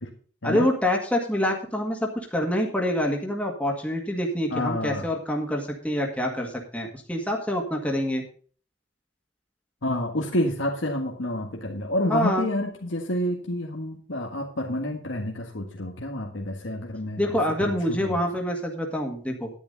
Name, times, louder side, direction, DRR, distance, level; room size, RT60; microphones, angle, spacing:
voice 1, 0.4-8.2 12.1-12.5 17.2-19.5, equal, 5° left, 1 dB, 1.9 m, -26 dB
voice 2, 4.5-5.1 9.8-17.3 17.6-18.2, left 1 dB, 75° left, 0 dB, 1.7 m, -29 dB
10.5 x 10.0 x 4.0 m, 0.42 s
head